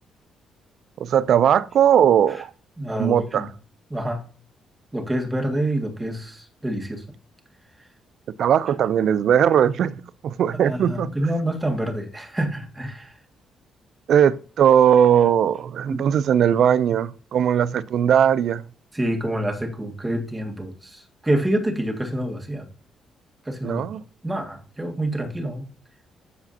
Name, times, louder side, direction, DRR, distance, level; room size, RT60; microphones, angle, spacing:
voice 1, 1.0-2.5 3.0-3.5 8.4-11.1 14.1-18.6 23.6-24.0, right 9 dB, 65° right, 0.4 m, -19 dB
voice 2, 2.8-3.5 3.9-4.3 4.9-7.0 10.6-13.1 15.9-16.1 18.9-22.7 23.5-23.8 24.2-25.7, right 1 dB, 15° right, 2.0 m, -27 dB
13.0 x 4.9 x 2.8 m
cardioid pair, 90°, 0 cm